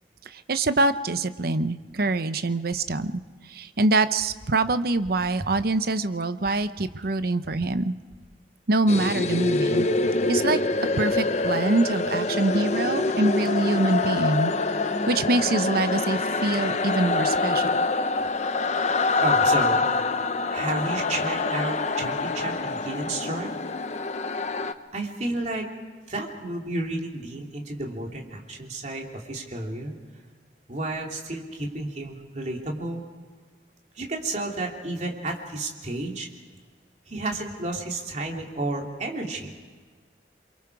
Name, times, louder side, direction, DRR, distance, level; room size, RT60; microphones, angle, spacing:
voice 1, 0.3-8.0 8.7-9.9 10.3-10.6 11.0-14.5 14.8-17.8, right 2 dB, 60° right, 12 dB, 0.8 m, -25 dB
sound 1, 8.9-24.7, left 3 dB, 40° left, 0.8 m, -25 dB
voice 2, 19.2-19.8 20.5-23.5 24.9-25.7 26.1-29.9 30.7-33.0 33.9-36.3 37.1-39.5, right 2 dB, 45° right, 0 dB, 3.0 m, -31 dB
28.5 x 23.0 x 4.8 m, 1.5 s
head